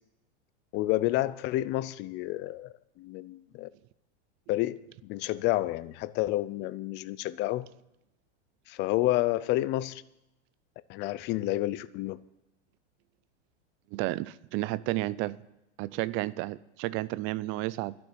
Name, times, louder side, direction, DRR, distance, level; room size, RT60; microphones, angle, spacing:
voice 1, 0.7-3.7 4.5-7.7 8.7-10.0 10.9-12.2, left 16 dB, 30° left, 0.5 m, -30 dB
voice 2, 13.9-15.4 15.8-18.0, right 17 dB, 35° right, 0.5 m, -32 dB
12.0 x 7.0 x 10.0 m
supercardioid pair, 140°, 35 cm